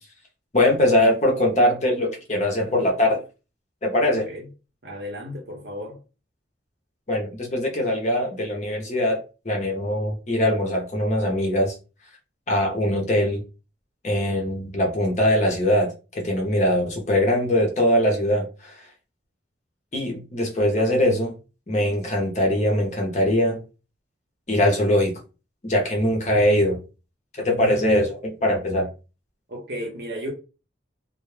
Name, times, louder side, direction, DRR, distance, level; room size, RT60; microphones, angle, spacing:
voice 1, 0.5-3.2 3.8-4.3 7.1-11.8 12.5-13.4 14.0-18.8 19.9-21.4 21.7-23.6 24.5-25.1 25.6-26.8 27.3-28.9, left 1 dB, 40° left, 0.7 m, -22 dB
voice 2, 4.8-6.0 29.5-30.3, equal, 60° right, 0.8 m, -34 dB
2.2 x 2.0 x 3.1 m
head